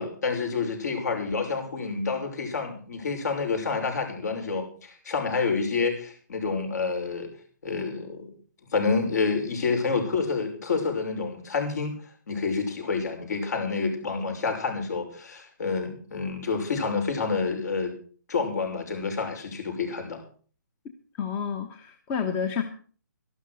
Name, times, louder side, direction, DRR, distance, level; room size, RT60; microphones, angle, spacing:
voice 1, 0.0-7.3 7.6-8.3 8.7-11.9 12.3-17.9 18.3-20.2, left 4 dB, 60° left, 4 dB, 6.0 m, -28 dB
voice 2, 21.2-22.6, left 7 dB, 20° left, 7 dB, 1.1 m, -29 dB
13.0 x 12.0 x 6.5 m, 0.43 s
hypercardioid pair, 155°, 10 cm